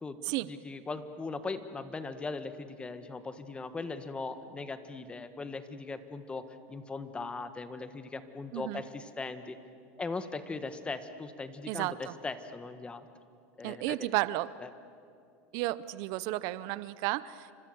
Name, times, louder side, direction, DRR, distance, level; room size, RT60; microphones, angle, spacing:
voice 1, 0.5-6.4 6.7-9.6 10.0-13.1 13.6-14.1 14.6-14.7, left 3 dB, 15° left, 10 dB, 1.4 m, -39 dB
voice 2, 11.7-12.1 13.6-14.5 15.5-17.5, right 17 dB, 60° right, 17 dB, 0.7 m, -33 dB
29.0 x 25.5 x 7.9 m, 2.4 s
supercardioid pair, 140°, 7 cm